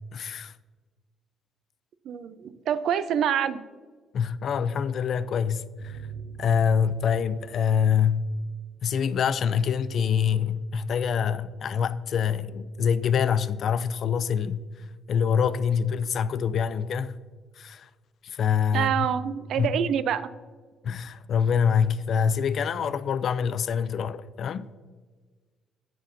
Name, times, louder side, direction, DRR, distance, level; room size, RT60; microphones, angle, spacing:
voice 1, 0.1-0.5 4.1-6.0 6.4-8.3 8.8-14.6 15.1-17.1 17.6-17.9 18.2-19.1 19.6-19.7 20.8-24.7, left 7 dB, 50° left, 0.3 m, -25 dB
voice 2, 2.0-3.7 18.7-20.3, right 9 dB, 60° right, 0.4 m, -26 dB
sound 1, 5.8-12.9 13.2-13.3 13.6-13.7, right 4 dB, 85° right, 1.1 m, -45 dB
16.0 x 5.7 x 2.6 m
cardioid pair, 150°, 0 cm